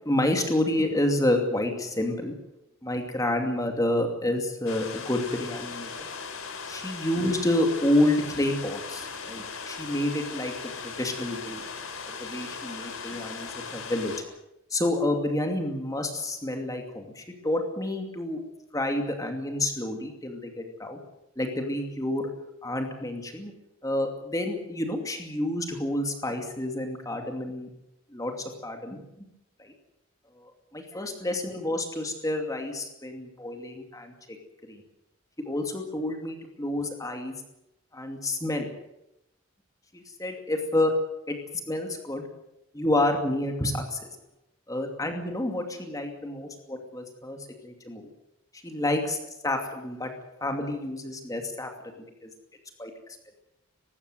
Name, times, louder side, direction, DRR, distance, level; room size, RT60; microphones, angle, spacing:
voice 1, 0.0-2.3 2.8-5.9 6.7-11.6 12.0-14.1 14.7-18.4 18.7-21.0 21.4-23.5 23.8-27.7 28.1-29.3 29.6-29.7 30.4-34.4 34.7-34.8 35.5-37.4 37.9-38.7 39.9-41.4 41.7-42.3 42.7-44.1 44.7-48.1 48.6-50.1 50.4-51.7 52.2-52.3 52.8-53.2, left 1 dB, 15° left, 4 dB, 2.6 m, -29 dB
sound 1, 4.7-14.2, left 5 dB, 85° left, 3.8 m, -38 dB
19.5 x 16.0 x 9.2 m, 0.84 s
head